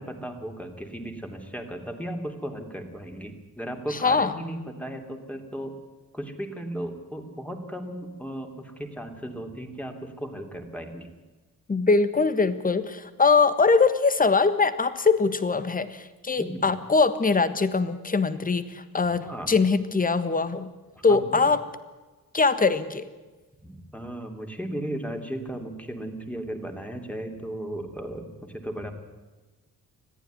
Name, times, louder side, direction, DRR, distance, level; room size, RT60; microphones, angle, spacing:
voice 1, 0.0-5.7 6.1-11.1 16.4-16.7 19.1-19.6 21.1-21.4 23.6-28.9, right 1 dB, 5° left, 5 dB, 3.0 m, -36 dB
voice 2, 3.9-4.3 11.7-19.2 19.5-20.7 21.0-21.6 22.3-23.1, left 4 dB, 25° left, 13 dB, 1.5 m, -22 dB
20.5 x 14.5 x 9.5 m, 1.2 s
wide cardioid pair, 125°, 34 cm